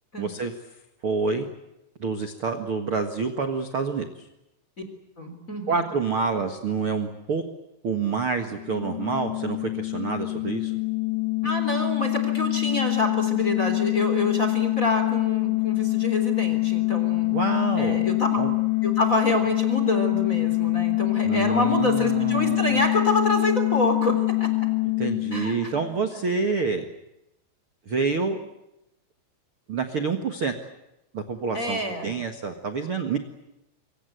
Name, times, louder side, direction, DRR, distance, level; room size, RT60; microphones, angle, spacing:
voice 1, 0.2-0.5 1.0-1.5 2.0-4.2 5.7-7.4 7.8-10.7 17.3-18.1 18.4-18.5 21.2-22.8 25.0-26.9 27.8-28.4 29.7-30.5 31.1-33.2, right 5 dB, 80° right, 6 dB, 1.2 m, -27 dB
voice 2, 5.2-5.8 11.4-17.3 17.7-18.4 18.8-24.1 24.4-24.5 25.3-25.7 31.5-32.1, left 1 dB, 20° left, 6 dB, 3.4 m, -27 dB
sound 1, 8.5-26.0, left 26 dB, 60° left, 3.1 m, -25 dB
26.5 x 24.5 x 8.2 m, 0.90 s
omnidirectional pair, 5.4 m